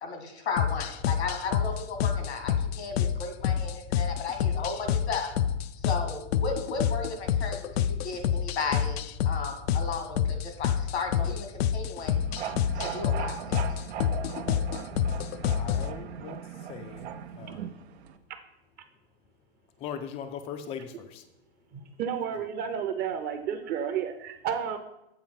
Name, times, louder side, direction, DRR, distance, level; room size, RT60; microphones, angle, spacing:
voice 1, 0.0-5.3 5.8-12.2 12.8-13.6, left 4 dB, 90° left, 5 dB, 2.0 m, -34 dB
sound 1, 0.6-15.9, left 9 dB, 75° left, 0.5 m, -28 dB
sound 2, 12.1-18.2, right 9 dB, 80° right, 0.7 m, -38 dB
voice 2, 15.5-17.1 17.4-17.7 19.8-21.2, left 7 dB, 20° left, 6 dB, 0.4 m, -40 dB
voice 3, 21.7-24.8, right 8 dB, 30° right, 8 dB, 0.7 m, -31 dB
7.8 x 4.1 x 5.7 m, 0.85 s
hypercardioid pair, 135°, 32 cm